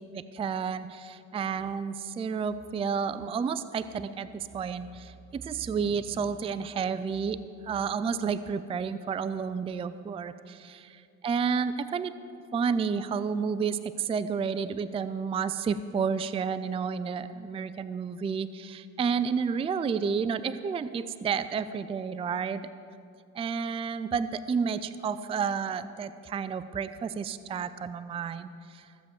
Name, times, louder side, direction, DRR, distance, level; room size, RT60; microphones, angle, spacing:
voice 1, 0.1-7.4 7.6-10.9 11.2-12.1 12.5-22.6 23.3-28.9, right 6 dB, 20° right, 13 dB, 0.4 m, -31 dB
15.0 x 7.7 x 7.0 m, 2.5 s
cardioid pair, 105°, 31 cm